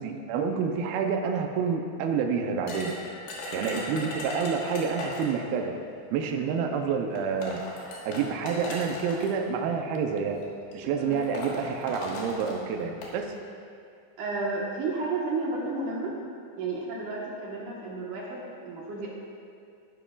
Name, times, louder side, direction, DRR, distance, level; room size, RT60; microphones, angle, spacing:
voice 1, 0.0-3.0 3.5-5.8 6.1-7.6 8.1-10.4 10.7-13.3, right 6 dB, 85° right, 3 dB, 2.3 m, -28 dB
sound 1, 2.7-5.4 6.5-6.6 7.2-9.3 10.2-10.4 10.7-10.8 11.1-13.1, left 1 dB, 75° left, 3.4 m, -37 dB
voice 2, 14.2-16.1 16.6-19.1, right 3 dB, 65° right, -4 dB, 2.3 m, -32 dB
14.0 x 11.0 x 2.4 m, 2.4 s
omnidirectional pair, 4.9 m